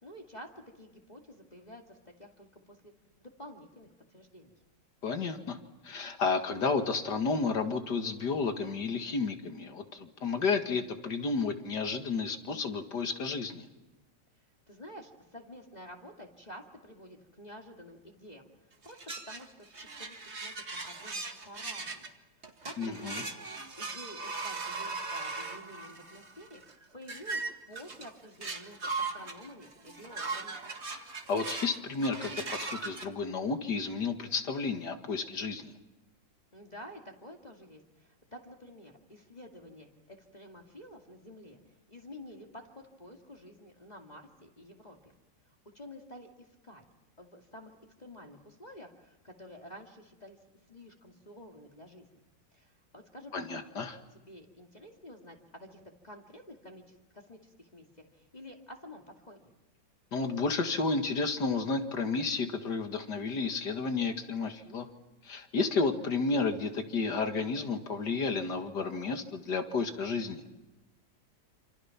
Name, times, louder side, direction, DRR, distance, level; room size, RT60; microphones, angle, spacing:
voice 1, 0.0-4.5 14.7-19.0 19.3-19.7 20.0-20.5 20.8-27.4 27.7-30.6 36.5-45.1 45.7-46.8 47.2-47.7 48.0-50.4 50.7-52.1 52.5-59.5, equal, 20° left, 1 dB, 2.3 m, -50 dB
voice 2, 5.0-5.6 5.8-13.7 22.8-23.2 31.3-35.7 53.3-54.0 60.1-64.9 65.2-70.4, left 4 dB, 65° left, 6 dB, 2.5 m, -31 dB
sound 1, 18.8-22.1 22.4-33.0, right 3 dB, 40° right, 2.2 m, -39 dB
27.5 x 27.5 x 5.9 m, 1.1 s
omnidirectional pair, 1.9 m